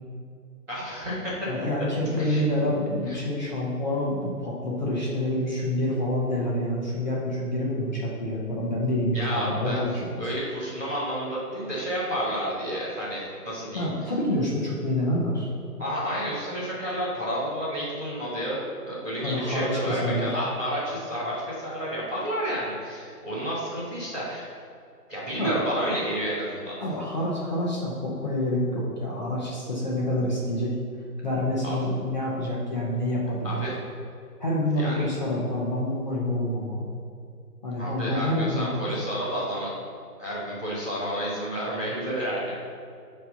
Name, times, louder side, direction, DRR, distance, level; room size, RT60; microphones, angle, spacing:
voice 1, 0.7-1.3 2.2-2.5 3.0-3.2 9.1-9.8 10.2-13.8 15.8-24.5 25.1-26.7 31.6-31.8 33.4-33.7 34.8-35.1 37.8-39.7 40.2-42.6, equal, 5° right, -18 dB, 1.0 m, -30 dB
voice 2, 1.5-9.9 10.2-10.3 13.7-15.5 19.2-20.3 25.3-25.5 26.8-30.7 31.2-33.6 34.4-37.0 37.6-38.8, left 1 dB, 30° left, -5 dB, 1.0 m, -27 dB
9.3 x 3.2 x 5.5 m, 2.4 s
figure-of-eight pair, 160°, 47 cm